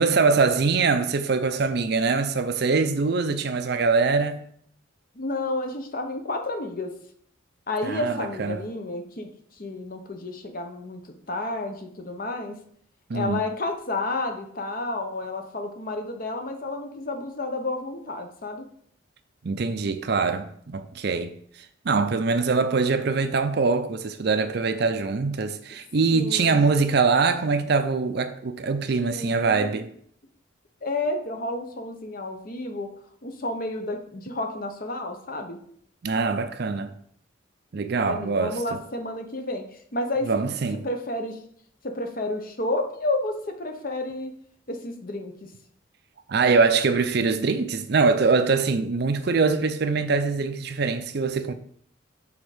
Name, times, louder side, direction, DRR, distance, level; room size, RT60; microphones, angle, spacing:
voice 1, 0.0-4.4 7.8-8.6 13.1-13.4 19.4-21.4 21.8-29.9 36.0-36.9 37.7-38.8 40.2-40.8 46.3-51.5, right 4 dB, 55° right, 0.5 m, -23 dB
voice 2, 5.1-6.9 7.7-9.3 9.6-11.0 11.3-12.6 13.1-18.7 26.1-26.6 29.0-29.7 30.8-32.9 33.2-35.6 38.0-39.6 39.9-40.3 40.8-41.4 41.8-44.3 44.7-45.5, left 2 dB, 45° left, 0.8 m, -31 dB
6.2 x 3.6 x 5.0 m
head